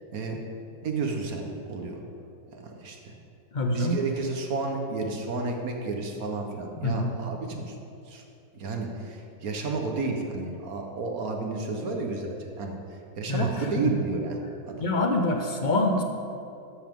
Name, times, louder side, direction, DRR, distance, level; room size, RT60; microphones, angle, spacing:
voice 1, 0.8-2.0 2.5-3.1 3.7-7.7 8.1-8.2 8.5-12.7 13.2-14.4 14.6-14.8, right 3 dB, 55° right, 2 dB, 1.6 m, -31 dB
voice 2, 3.5-4.0 6.8-7.1 13.3-13.9 14.8-16.0, left 2 dB, 45° left, 3 dB, 0.6 m, -25 dB
13.0 x 11.0 x 3.8 m, 2.6 s
omnidirectional pair, 2.0 m